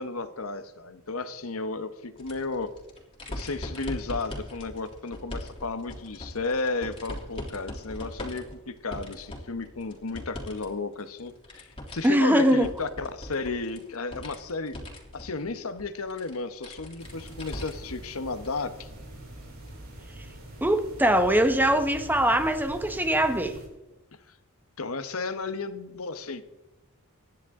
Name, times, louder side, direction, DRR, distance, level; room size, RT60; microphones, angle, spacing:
voice 1, 0.0-2.7 3.3-14.8 15.1-18.9 24.8-26.4, left 3 dB, 75° left, 1.1 m, -33 dB
sound 1, 2.2-10.7 11.0-18.0 18.4-18.5 19.7-19.8, left 1 dB, 25° left, 3.2 m, -41 dB
voice 2, 12.0-12.7 20.6-23.6, right 1 dB, 10° right, 1.2 m, -22 dB
sound 2, 17.0-23.7, right 1 dB, 70° right, 5.8 m, -44 dB
25.5 x 10.5 x 3.8 m
head